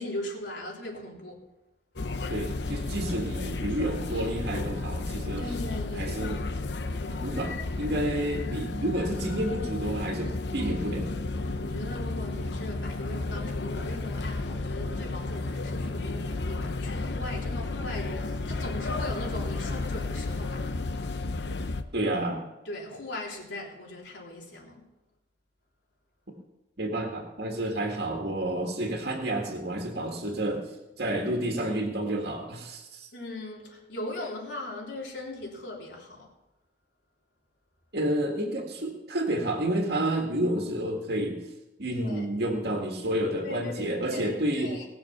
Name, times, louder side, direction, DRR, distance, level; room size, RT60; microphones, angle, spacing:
voice 1, 0.0-1.4 5.4-6.2 7.0-7.3 11.5-20.7 22.7-24.8 30.3-30.6 33.1-36.3 41.9-42.3 43.4-44.9, left 2 dB, 90° left, 3.4 m, -39 dB
sound 1, 2.0-21.8, left 2 dB, 70° left, 0.8 m, -32 dB
voice 2, 2.3-5.5 6.0-6.5 7.2-11.1 21.9-22.5 26.8-30.6 31.0-33.1 37.9-41.4 41.8-44.7, right 1 dB, 65° right, 1.9 m, -30 dB
19.5 x 7.0 x 5.9 m
head